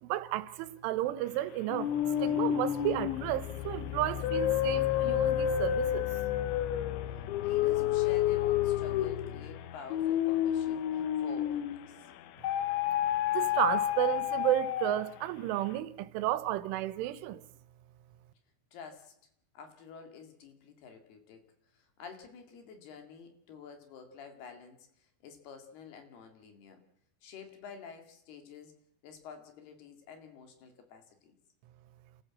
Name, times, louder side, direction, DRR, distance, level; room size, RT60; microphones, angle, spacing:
voice 1, 0.0-6.1 13.3-17.4, right 14 dB, 80° right, 3.4 m, -32 dB
sound 1, 1.7-11.9 12.4-15.2, left 11 dB, 75° left, 3.3 m, -30 dB
voice 2, 7.4-12.1 18.7-19.1 19.5-21.4 21.7-26.8 27.2-28.7 29.0-31.3, left 6 dB, 60° left, 3.8 m, -50 dB
30.0 x 14.0 x 7.5 m
omnidirectional pair, 5.7 m